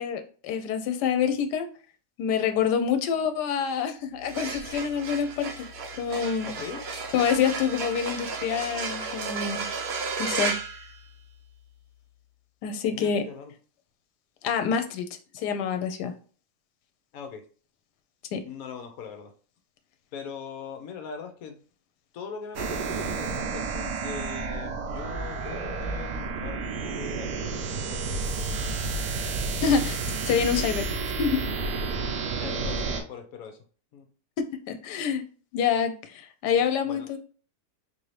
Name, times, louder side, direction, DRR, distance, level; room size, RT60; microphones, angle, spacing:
voice 1, 0.0-1.7 2.2-5.7 6.0-6.5 7.1-9.7 10.2-10.5 12.6-13.2 14.4-15.1 15.3-16.1 18.3-18.4 29.6-30.0 30.3-30.8 31.2-31.4 34.7-35.2 35.5-37.2, left 7 dB, 85° left, 7 dB, 1.2 m, -26 dB
sound 1, 4.1-11.6, right 4 dB, 65° right, 0.6 m, -34 dB
voice 2, 6.4-6.9 12.9-13.5 17.1-17.4 18.4-19.3 20.1-21.6 22.1-28.7 32.4-33.6 33.9-34.1 36.8-37.2, left 6 dB, 65° left, 5 dB, 1.0 m, -41 dB
sound 2, 22.6-33.0, right 4 dB, 90° right, 1.3 m, -31 dB
4.0 x 2.7 x 3.1 m, 0.40 s
omnidirectional pair, 1.7 m